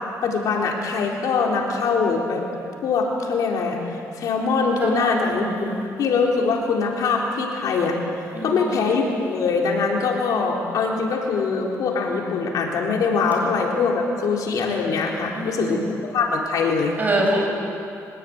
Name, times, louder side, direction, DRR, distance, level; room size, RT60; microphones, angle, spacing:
voice 1, 0.2-2.4 2.8-5.5 6.0-8.0 8.4-17.0, left 4 dB, 75° left, -1 dB, 3.9 m, -23 dB
voice 2, 4.8-5.8 8.3-8.8 15.3-15.8 17.0-17.4, right 1 dB, 30° right, -1 dB, 8.0 m, -25 dB
24.5 x 18.0 x 9.5 m, 2.6 s
cardioid pair, 115°, 6 cm